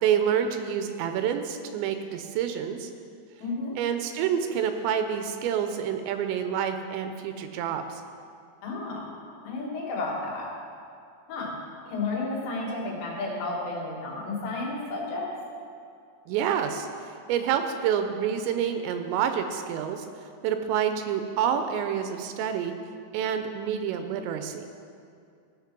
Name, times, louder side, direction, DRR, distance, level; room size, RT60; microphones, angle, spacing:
voice 1, 0.0-2.9 3.8-8.0 16.3-20.1 20.4-22.7 23.1-24.7, right 8 dB, 85° right, 7 dB, 2.9 m, -28 dB
voice 2, 3.4-3.8 8.6-9.1 9.4-10.5 11.3-11.6 11.9-15.3, left 3 dB, 75° left, -3 dB, 3.9 m, -32 dB
15.0 x 5.2 x 5.9 m, 2.4 s
omnidirectional pair, 5.1 m